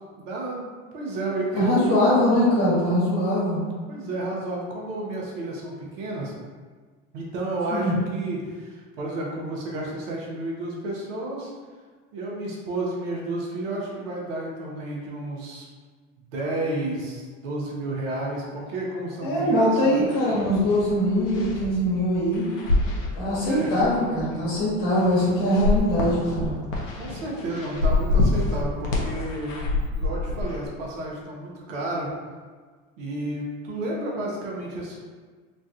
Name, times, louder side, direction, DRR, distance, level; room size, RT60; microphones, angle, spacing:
voice 1, 0.2-0.6 0.9-2.0 3.9-6.3 7.1-11.5 12.1-15.7 16.3-20.1 23.4-23.9 26.9-29.6 29.9-32.1 33.0-35.0, right 2 dB, 70° right, -3 dB, 0.9 m, -31 dB
voice 2, 1.5-3.6 7.7-7.9 19.2-22.5 23.2-26.6, equal, 55° left, -8 dB, 1.4 m, -22 dB
sound 1, 19.8-19.9 20.1-30.7, left 2 dB, 75° left, 0.8 m, -28 dB
3.2 x 2.3 x 2.7 m, 1.5 s
hypercardioid pair, 75°, 39 cm